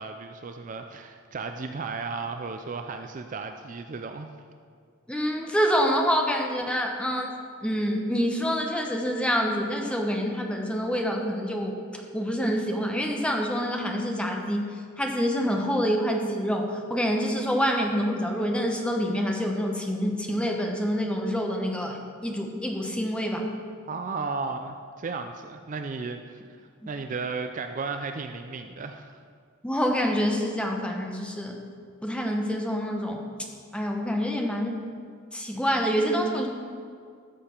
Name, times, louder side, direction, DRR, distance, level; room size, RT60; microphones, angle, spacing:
voice 1, 0.0-4.3 23.9-26.4 26.9-29.2, right 4 dB, 40° right, 6 dB, 0.4 m, -34 dB
voice 2, 5.1-7.3 7.6-14.7 15.0-23.5 29.6-31.6 32.0-33.2 33.7-34.8 35.3-36.5, equal, 5° left, 2 dB, 0.9 m, -27 dB
14.0 x 6.8 x 4.4 m, 2.1 s
head